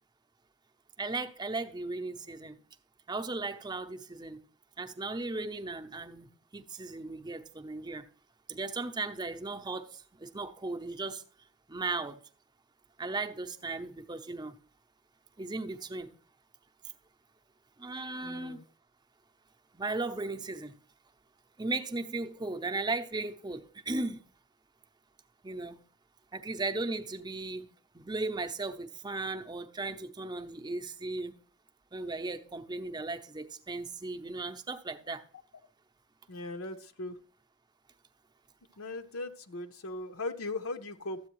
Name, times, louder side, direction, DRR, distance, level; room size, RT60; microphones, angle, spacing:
voice 1, 1.0-2.6 3.1-4.4 4.8-6.3 6.5-8.0 8.5-11.2 11.7-12.2 13.0-14.5 15.4-16.1 17.8-18.6 19.7-20.7 21.6-24.2 25.4-25.8 26.3-27.7 27.9-31.4 31.9-35.2, right 3 dB, 20° right, 0.6 m, -36 dB
voice 2, 18.2-18.6 36.3-37.2 38.8-41.2, left 2 dB, 70° left, 0.7 m, -38 dB
13.0 x 8.3 x 3.1 m
head